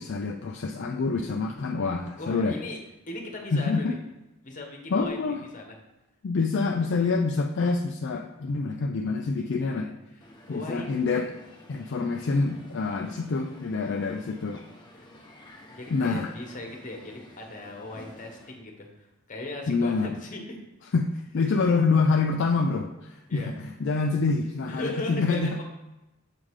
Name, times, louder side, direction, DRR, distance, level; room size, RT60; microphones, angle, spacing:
voice 1, 0.0-2.6 3.5-3.9 4.9-5.4 6.2-9.9 10.5-11.3 11.7-14.6 15.9-16.3 19.7-20.1 20.9-25.6, left 4 dB, 60° left, 3 dB, 0.4 m, -26 dB
voice 2, 2.2-2.8 3.1-4.0 4.4-5.7 9.2-9.9 10.5-10.9 13.8-13.9 15.0-15.1 15.7-20.6 23.3-23.5 24.7-25.6, left 2 dB, 40° left, 2 dB, 1.3 m, -38 dB
Crowd, 10.2-18.5, left 1 dB, 20° left, 1.1 m, -51 dB
7.5 x 3.8 x 4.8 m, 0.98 s
head